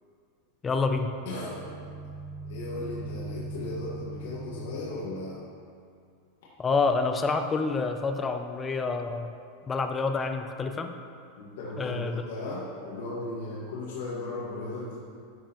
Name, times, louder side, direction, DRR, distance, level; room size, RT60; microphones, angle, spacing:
voice 1, 0.6-1.1 6.6-9.3 9.7-10.9 11.8-12.2, left 4 dB, 15° left, 6 dB, 0.4 m, -28 dB
sound 1, 1.0-5.6, right 2 dB, 25° right, 0.6 m, -41 dB
voice 2, 1.2-1.7 2.4-5.4 11.4-15.0, left 2 dB, 75° left, -7 dB, 1.5 m, -36 dB
10.0 x 5.4 x 3.0 m, 2.3 s
supercardioid pair, 150°, 0 cm